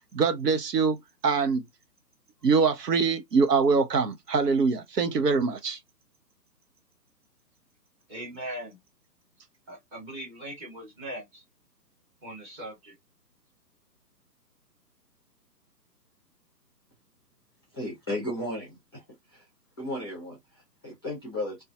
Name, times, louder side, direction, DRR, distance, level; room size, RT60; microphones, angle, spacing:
voice 1, 0.1-1.0 1.2-1.6 2.4-5.8, right 5 dB, 70° right, 0.7 m, -23 dB
voice 2, 8.1-8.8 9.7-11.4 12.2-12.9, right 1 dB, 15° right, 1.0 m, -40 dB
voice 3, 17.7-19.0 19.3-19.5 19.8-21.6, left 1 dB, 15° left, 0.5 m, -35 dB
2.5 x 2.3 x 2.3 m
figure-of-eight pair, 135°, 50 cm